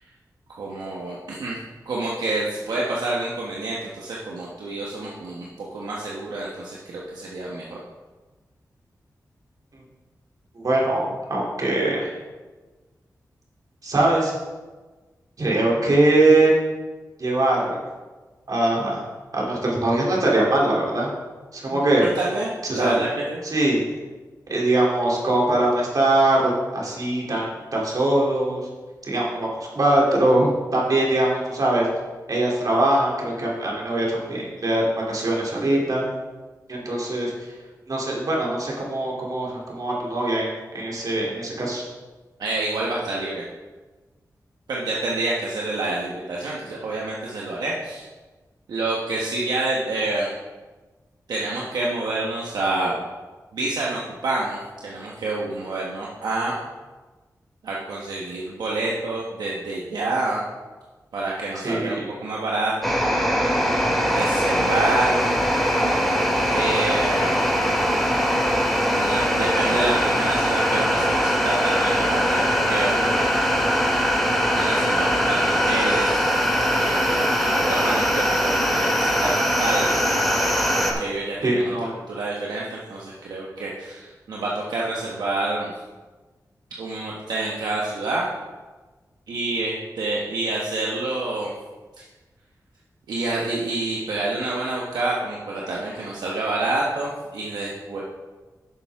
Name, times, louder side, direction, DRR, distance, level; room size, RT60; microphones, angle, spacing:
voice 1, 0.6-1.6 1.8-7.8 21.7-23.4 42.4-43.4 44.7-48.1 48.7-50.3 51.3-52.9 53.5-56.5 57.6-60.4 61.1-62.9 64.0-65.1 66.5-67.5 68.9-73.0 74.5-76.2 76.8-79.9 80.8-85.7 86.8-88.3 89.3-91.5 92.0-92.1 93.1-98.0, right 2 dB, 90° right, -4 dB, 1.2 m, -28 dB
voice 2, 10.5-12.1 13.8-14.3 15.4-16.5 17.2-17.8 18.5-19.0 19.3-21.1 21.5-22.0 22.6-23.0 23.4-23.8 24.5-28.6 29.0-31.9 32.3-36.0 36.7-37.3 37.9-41.8 61.6-62.1 81.4-82.0, right 1 dB, 60° right, -3 dB, 3.0 m, -22 dB
sound 1, 62.8-80.9, equal, ahead, 2.2 m, -21 dB
10.5 x 7.2 x 3.6 m, 1.3 s
cardioid pair, 45°, 7 cm